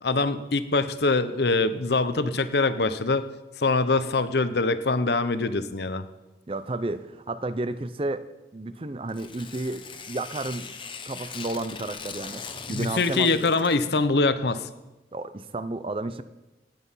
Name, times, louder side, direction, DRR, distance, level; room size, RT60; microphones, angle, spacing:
voice 1, 0.0-3.2 3.6-6.0 12.7-14.7, left 3 dB, 70° left, 13 dB, 0.8 m, -24 dB
voice 2, 6.5-8.3 8.5-10.8 11.0-13.5 15.1-16.2, right 2 dB, 30° right, 13 dB, 0.5 m, -32 dB
Tearing, 9.1-13.9, left 6 dB, 30° left, 0.9 m, -40 dB
16.5 x 9.3 x 5.6 m, 1.1 s
head